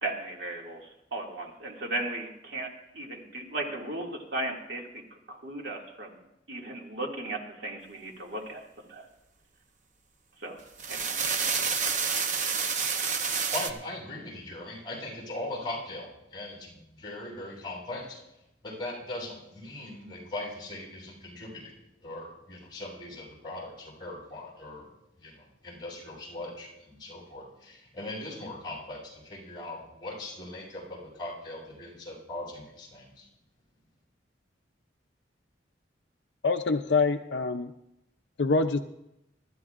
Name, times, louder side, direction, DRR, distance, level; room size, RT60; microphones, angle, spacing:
voice 1, 0.0-2.7 2.9-4.9 5.3-6.2 6.5-8.6 8.9-9.1 10.4-10.6 10.9-11.2, right 2 dB, 70° right, 0 dB, 2.2 m, -36 dB
sound 1, 10.6-13.7, right 5 dB, 45° right, 0.8 m, -28 dB
voice 2, 12.2-12.5 13.5-18.2 18.6-21.7 22.0-24.9 25.2-33.2, left 2 dB, 25° left, -4 dB, 6.6 m, -40 dB
voice 3, 36.4-37.7 38.4-38.8, left 4 dB, 70° left, 7 dB, 0.5 m, -25 dB
23.5 x 13.5 x 2.5 m, 0.87 s
head